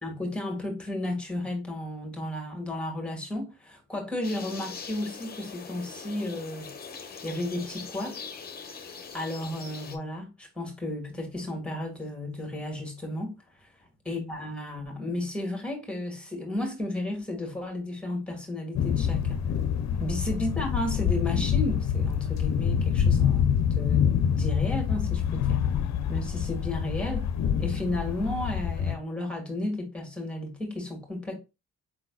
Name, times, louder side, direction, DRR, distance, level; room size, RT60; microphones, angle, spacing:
voice 1, 0.0-6.7 7.2-8.3 9.1-13.3 13.6-13.7 14.1-19.5 20.0-25.7 26.1-27.3 27.6-31.4, left 1 dB, 5° left, 1.9 m, -33 dB
sound 1, 4.2-10.0, left 5 dB, 30° left, 0.9 m, -42 dB
sound 2, 18.7-28.9, left 8 dB, 65° left, 0.7 m, -26 dB
4.9 x 3.8 x 2.3 m
cardioid pair, 90°, 30 cm